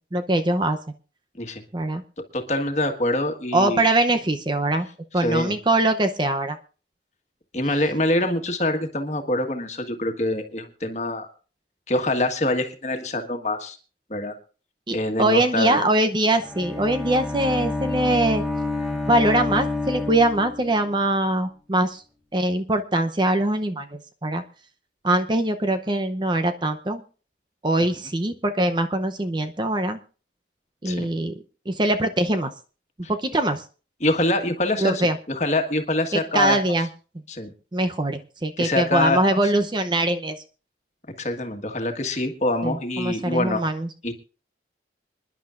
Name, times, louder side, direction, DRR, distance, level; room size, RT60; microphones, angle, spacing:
voice 1, 0.1-0.8 1.7-2.0 3.5-4.9 5.1-6.6 14.9-18.4 19.1-22.0 22.3-24.4 25.0-27.0 27.6-30.0 30.8-31.3 31.7-32.5 33.2-33.6 34.8-35.2 36.1-36.9 37.7-40.4 42.6-43.9, right 1 dB, 25° right, 8 dB, 0.7 m, -22 dB
voice 2, 2.3-3.8 5.2-5.6 7.5-11.3 11.9-13.8 14.1-14.3 14.9-15.8 30.8-31.1 33.0-33.1 34.0-36.6 37.3-37.5 38.6-39.5 41.2-43.6 44.0-44.1, left 1 dB, 40° left, 5 dB, 1.5 m, -25 dB
Bowed string instrument, 16.2-20.9, left 2 dB, ahead, 3.1 m, -28 dB
26.0 x 10.5 x 2.5 m, 0.37 s
head